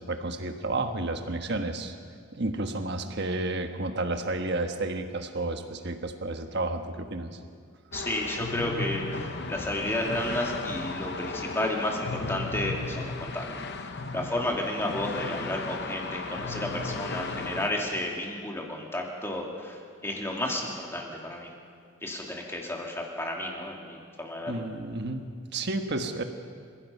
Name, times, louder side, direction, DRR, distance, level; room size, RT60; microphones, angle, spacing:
voice 1, 0.0-1.9 2.3-7.4 24.5-26.2, right 2 dB, 50° right, 6 dB, 1.4 m, -31 dB
sound 1, 7.9-17.7, left 3 dB, 50° left, 0.9 m, -35 dB
voice 2, 7.9-13.5 13.8-21.5 22.0-24.5, left 1 dB, 10° left, 0 dB, 2.6 m, -32 dB
29.5 x 16.0 x 5.6 m, 2.1 s
head